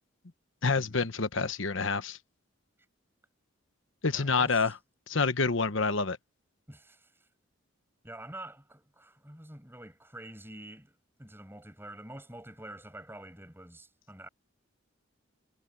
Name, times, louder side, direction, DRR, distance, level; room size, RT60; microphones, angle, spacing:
voice 1, 0.6-2.2 4.0-4.7 5.1-6.2, left 4 dB, 65° left, 1.1 m, -27 dB
voice 2, 4.1-4.7 6.7-7.3 8.0-14.3, right 1 dB, 10° right, 6.8 m, -47 dB
head